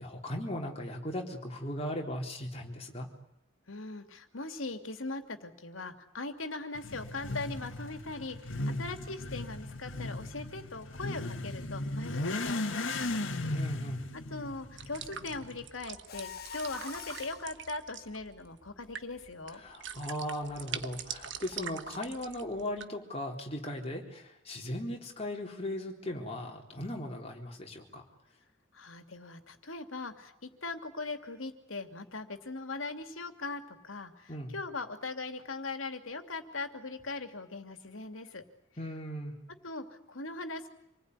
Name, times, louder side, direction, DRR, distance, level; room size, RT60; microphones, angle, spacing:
voice 1, 0.0-3.1 8.6-8.8 13.5-14.1 19.6-28.0 34.3-34.6 38.8-39.4, left 1 dB, 30° left, 1 dB, 4.0 m, -38 dB
voice 2, 3.7-13.3 14.1-19.6 28.7-38.4 39.6-40.7, left 3 dB, 85° left, 7 dB, 2.6 m, -40 dB
Motorcycle / Accelerating revving vroom, 6.7-15.6, left 2 dB, 70° left, 2.2 m, -37 dB
sound 1, 14.8-22.9, right 8 dB, 65° right, 1.2 m, -44 dB
Mechanisms, 16.1-17.5, left 8 dB, 50° left, 1.3 m, -44 dB
27.0 x 20.0 x 9.7 m, 0.83 s
head